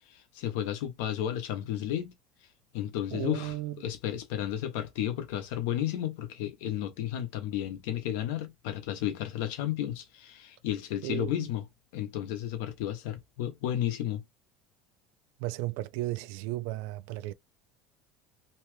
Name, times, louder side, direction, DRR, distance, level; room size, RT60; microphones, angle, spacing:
voice 1, 0.1-2.1 2.7-11.6 11.9-14.2, left 11 dB, 75° left, 0.8 m, -33 dB
voice 2, 3.1-3.8 11.0-11.5 15.4-17.3, right 16 dB, 70° right, 0.4 m, -35 dB
2.8 x 2.2 x 3.2 m
cardioid pair, 180°, 0 cm